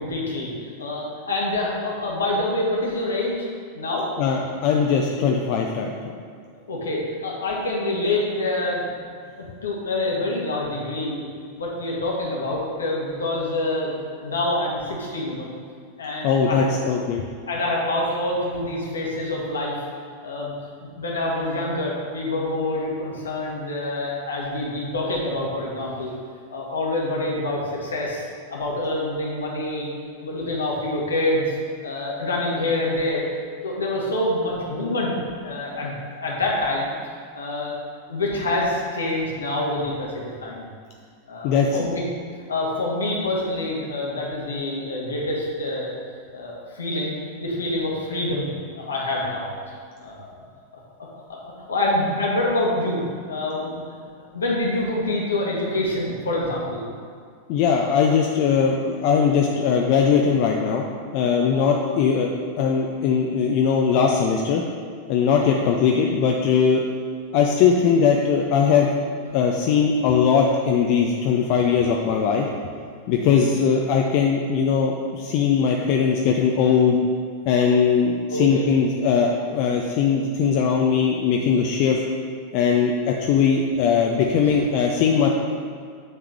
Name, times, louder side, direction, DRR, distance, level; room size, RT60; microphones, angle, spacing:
voice 1, 0.0-3.5 3.7-4.1 6.7-8.9 9.4-11.3 11.6-13.9 14.2-15.5 16.0-16.7 17.5-19.8 20.2-20.5 20.8-26.1 26.5-28.3 28.5-29.9 30.2-31.6 31.8-33.2 33.6-35.1 35.4-37.7 38.1-40.7 41.3-42.0 42.5-45.9 46.3-48.5 48.7-49.5 50.0-50.4 51.3-51.4 51.7-53.7 54.3-56.8 65.3-65.6 78.3-78.7 84.4-84.6, left 2 dB, 70° left, -3 dB, 1.6 m, -26 dB
voice 2, 4.2-5.9 16.2-17.2 41.4-41.7 57.5-60.8 61.1-62.3 62.6-64.6 65.1-66.8 67.3-68.9 69.3-72.5 73.1-77.0 77.4-82.0 82.5-85.3, left 6 dB, 45° left, 0 dB, 0.5 m, -20 dB
8.1 x 3.6 x 6.0 m, 2.1 s
figure-of-eight pair, 90°, 0 cm